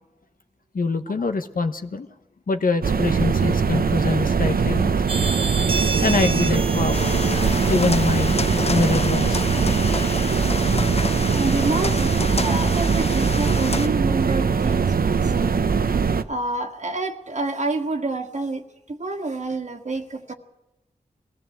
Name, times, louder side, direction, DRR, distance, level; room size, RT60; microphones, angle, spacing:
voice 1, 0.7-2.1 2.5-5.0 6.0-10.4 11.2-11.4, left 3 dB, 70° left, 8 dB, 1.1 m, -25 dB
sound 1, 2.8-16.2, right 5 dB, 90° right, 0.8 m, -21 dB
sound 2, 5.1-11.8, right 3 dB, 40° right, 0.9 m, -32 dB
sound 3, 6.9-13.9, left 3 dB, 45° left, 0.9 m, -29 dB
voice 2, 11.3-15.5 16.2-20.3, right 2 dB, 55° right, 3 dB, 1.7 m, -28 dB
21.5 x 16.0 x 7.8 m, 0.95 s
wide cardioid pair, 60°, 15 cm